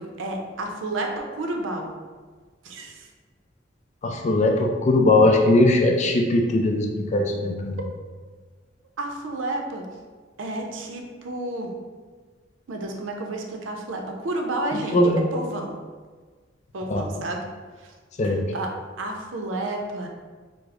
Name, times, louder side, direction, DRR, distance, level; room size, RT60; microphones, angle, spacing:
voice 1, 0.0-2.0 2.6-3.1 9.0-9.9 10.4-11.7 12.7-15.0 15.3-15.8 16.7-17.5 17.8-17.9 18.2-20.1, right 2 dB, 85° right, 2 dB, 0.5 m, -31 dB
voice 2, 4.0-7.8 14.9-15.3 16.9-17.1 18.2-18.4, left 2 dB, 40° left, 2 dB, 0.4 m, -20 dB
3.3 x 2.0 x 3.5 m, 1.5 s
head